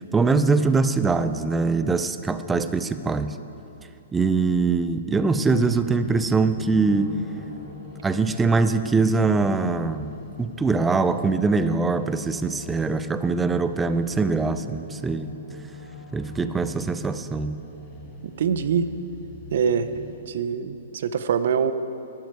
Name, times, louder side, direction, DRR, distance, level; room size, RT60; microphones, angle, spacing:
voice 1, 0.1-3.4 4.1-7.2 8.0-10.1 10.4-15.3 16.1-17.6, right 4 dB, 10° right, 11 dB, 0.4 m, -22 dB
sound 1, 5.3-20.2, left 3 dB, 20° left, 2.5 m, -42 dB
voice 2, 18.4-18.9 19.5-19.9 20.3-21.7, right 7 dB, 60° right, 12 dB, 0.6 m, -23 dB
12.0 x 11.5 x 4.6 m, 2.9 s
hypercardioid pair, 155°, 0 cm